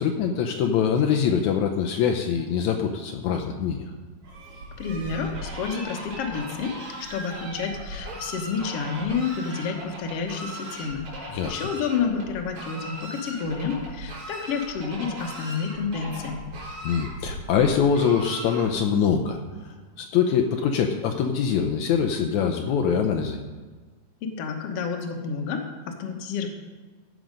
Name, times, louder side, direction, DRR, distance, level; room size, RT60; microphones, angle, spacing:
voice 1, 0.0-3.9 11.3-11.6 16.8-23.4, left 7 dB, 85° left, 3 dB, 1.6 m, -24 dB
Fowl, 4.2-19.0, right 1 dB, 50° right, 5.3 m, -38 dB
voice 2, 4.8-6.7 7.1-11.1 11.5-16.4 24.2-26.5, left 5 dB, 60° left, 3 dB, 1.6 m, -29 dB
15.5 x 6.3 x 5.2 m, 1.4 s
omnidirectional pair, 4.1 m